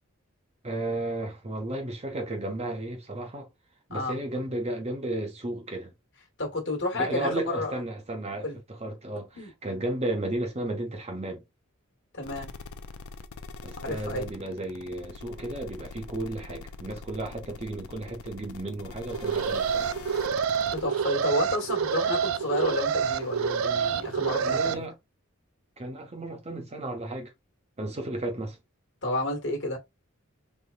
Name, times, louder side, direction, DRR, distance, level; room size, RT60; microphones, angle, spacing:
voice 1, 0.6-3.5 3.9-5.9 6.9-9.3 9.6-11.4 13.6-19.9 24.3-24.9 25.8-27.3 27.8-28.6, right 1 dB, 30° right, 1.0 m, -33 dB
voice 2, 6.4-7.7 8.4-8.6 9.3-9.5 12.1-12.5 13.8-14.2 20.7-24.8 29.0-29.8, left 1 dB, 55° left, 1.4 m, -30 dB
sound 1, 12.2-20.9, left 4 dB, 80° left, 0.5 m, -43 dB
Alarm, 19.1-24.7, right 6 dB, 70° right, 0.4 m, -27 dB
3.6 x 3.0 x 2.3 m
head